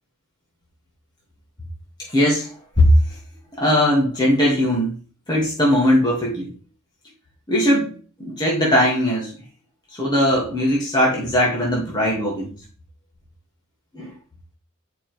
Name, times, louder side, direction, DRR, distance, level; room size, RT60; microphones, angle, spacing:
voice 1, 2.0-2.5 2.8-3.2 3.5-5.0 5.3-6.5 7.5-7.9 8.2-9.3 9.9-12.5 13.9-14.1, equal, 20° left, -4 dB, 2.7 m, -19 dB
11.0 x 5.9 x 3.6 m, 0.36 s
head